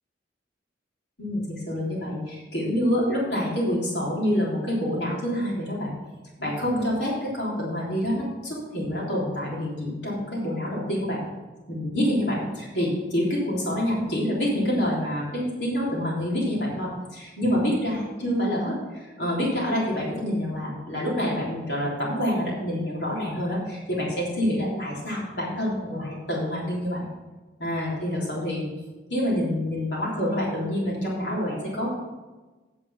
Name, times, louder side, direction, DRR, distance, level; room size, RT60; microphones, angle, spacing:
voice 1, 1.2-5.9 6.4-11.2 11.7-27.1 27.6-28.7 29.1-31.9, equal, 75° left, -5 dB, 3.4 m, -27 dB
8.6 x 7.6 x 5.7 m, 1.2 s
head